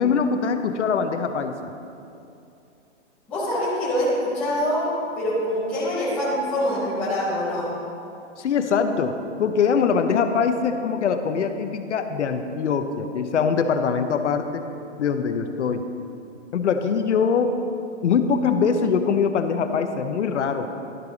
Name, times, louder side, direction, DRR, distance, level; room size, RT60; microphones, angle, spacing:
voice 1, 0.0-1.7 8.4-14.6 15.0-15.8 16.5-17.5 18.0-20.7, left 6 dB, 75° left, 8 dB, 0.8 m, -23 dB
voice 2, 3.3-4.9 5.1-7.7, equal, 5° left, -12 dB, 0.6 m, -24 dB
12.0 x 5.7 x 3.9 m, 2.7 s
hypercardioid pair, 180°, 36 cm